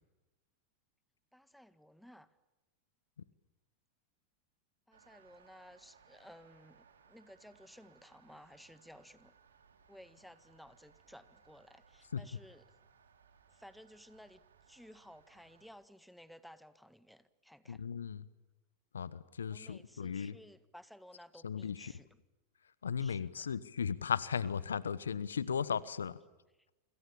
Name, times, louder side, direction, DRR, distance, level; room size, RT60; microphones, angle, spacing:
voice 1, 1.3-2.3 4.9-9.3 9.9-12.6 13.5-17.8 19.5-22.1 23.0-23.5, equal, ahead, 13 dB, 1.7 m, -57 dB
sound 1, 4.9-15.7, right 6 dB, 75° right, 3.7 m, -65 dB
voice 2, 17.7-18.3 18.9-20.4 21.4-21.9 22.6-26.2, left 7 dB, 80° left, 18 dB, 1.2 m, -36 dB
28.0 x 27.0 x 7.1 m, 1.0 s
figure-of-eight pair, 90°, 0 cm